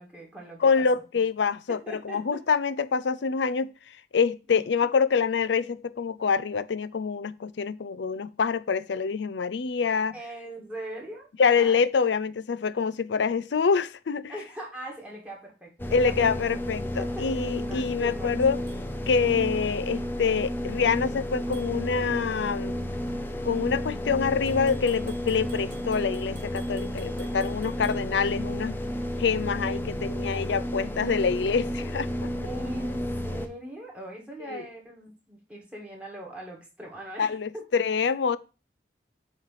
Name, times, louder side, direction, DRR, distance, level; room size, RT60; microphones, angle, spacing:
voice 1, 0.0-1.0 1.7-2.4 4.5-4.9 10.1-11.3 11.6-11.8 14.3-16.1 17.0-17.2 17.6-18.4 30.0-30.1 30.3-30.5 31.0-31.4 32.4-37.6, right 1 dB, 5° right, 2.1 m, -41 dB
voice 2, 0.6-3.7 4.1-10.1 11.4-14.3 15.9-18.6 19.1-22.8 23.4-28.8 29.2-32.3 34.5-34.6 37.2-38.4, left 5 dB, 85° left, 0.5 m, -26 dB
sound 1, 15.8-33.5, equal, 10° left, 0.6 m, -32 dB
sound 2, 18.7-18.8 21.5-21.7 24.5-28.0, right 6 dB, 45° right, 2.2 m, -52 dB
8.5 x 3.2 x 5.6 m
head